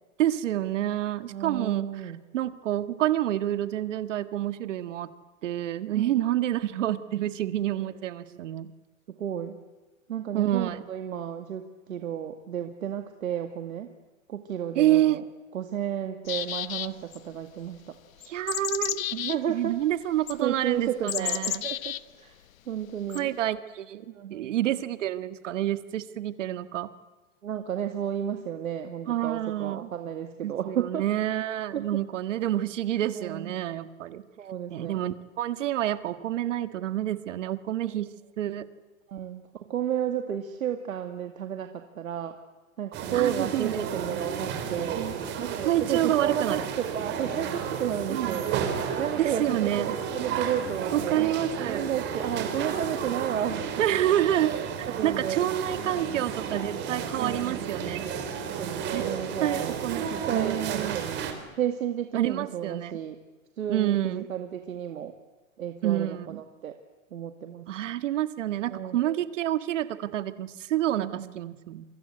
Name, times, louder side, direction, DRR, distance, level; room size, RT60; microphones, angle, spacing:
voice 1, 0.2-5.1 5.4-8.7 10.3-10.8 14.7-15.2 18.3-19.0 19.5-21.6 23.1-26.9 29.1-29.9 30.4-34.2 34.7-38.7 43.1-43.9 44.9-45.1 45.6-46.6 48.1-48.4 49.2-50.0 50.9-51.8 53.8-58.1 58.9-59.1 59.4-61.0 62.1-63.0 63.7-64.3 65.8-66.4 67.7-71.8, right 12 dB, 65° right, 12 dB, 1.8 m, -28 dB
voice 2, 1.3-2.2 5.9-6.1 8.3-8.4 9.1-9.6 10.1-13.9 14.3-15.2 15.5-18.0 19.1-19.7 20.4-22.4 22.7-23.3 24.1-24.5 27.4-31.0 31.7-31.8 33.0-33.5 34.4-35.0 39.1-42.4 42.8-45.0 45.4-48.5 49.0-51.3 51.7-53.8 54.8-55.5 55.8-56.0 57.2-57.7 58.6-59.8 60.1-63.2 63.6-65.1 65.6-66.8 67.1-67.7 68.7-69.2 71.0-71.4, right 9 dB, 85° right, 6 dB, 2.2 m, -32 dB
sound 1, 16.3-17.2 18.2-19.4 20.3-20.4 21.1-22.0 23.1-23.2, left 11 dB, 80° left, 1.2 m, -31 dB
sound 2, 42.9-61.3, right 7 dB, 25° right, 3.9 m, -32 dB
28.5 x 24.5 x 8.0 m, 1.2 s
hypercardioid pair, 150°, 40 cm